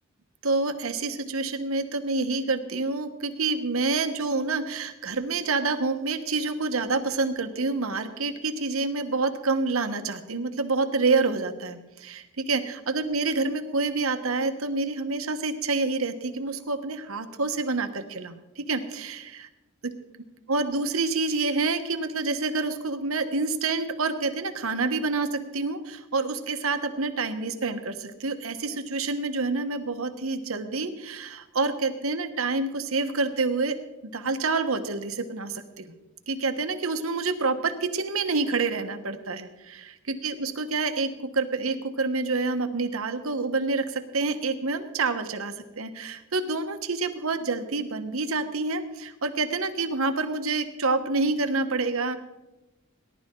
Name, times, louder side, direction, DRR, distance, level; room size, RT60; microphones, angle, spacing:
voice 1, 0.4-19.5 19.8-19.9 20.5-33.8 34.0-35.9 36.3-52.2, right 3 dB, 75° right, 8 dB, 1.2 m, -28 dB
18.5 x 11.5 x 3.8 m, 1.0 s
head